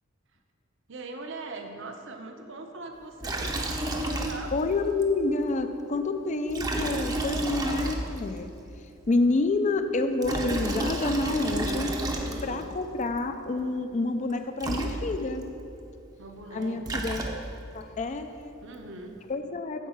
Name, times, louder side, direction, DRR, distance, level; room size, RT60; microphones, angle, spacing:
voice 1, 0.9-3.6 3.8-4.5 12.2-12.7 16.2-17.2 18.6-19.2, right 2 dB, 65° right, 4 dB, 0.9 m, -41 dB
Liquid, 3.2-4.7 5.0-5.1 6.5-8.4 10.0-12.7 14.3-14.4 14.6-15.4 16.6-17.7, right 1 dB, 20° right, 0.6 m, -31 dB
voice 2, 4.5-8.5 9.1-11.9 12.4-15.4 16.5-17.3 17.7-18.6 19.3-19.9, left 3 dB, 35° left, 8 dB, 0.4 m, -28 dB
8.4 x 4.6 x 7.1 m, 2.7 s
head